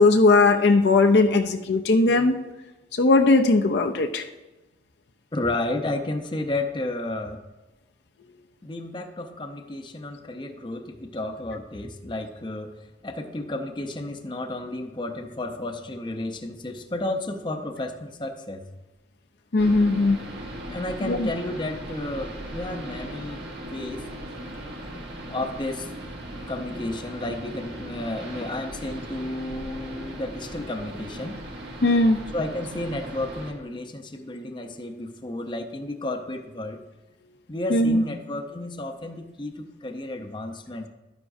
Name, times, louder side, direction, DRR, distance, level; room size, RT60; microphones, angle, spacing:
voice 1, 0.0-2.4 2.9-4.3 19.5-20.2 21.0-21.3 31.8-32.2 37.7-38.0, left 3 dB, 65° left, 5 dB, 0.5 m, -19 dB
voice 2, 5.3-7.4 8.6-12.8 13.0-18.6 20.7-23.4 23.7-24.0 25.3-25.9 26.5-31.4 32.3-36.8 37.5-40.9, left 2 dB, 25° left, 5 dB, 0.6 m, -32 dB
sound 1, 19.6-33.5, right 1 dB, 60° right, 1.5 m, -38 dB
12.0 x 9.6 x 2.6 m, 1.1 s
head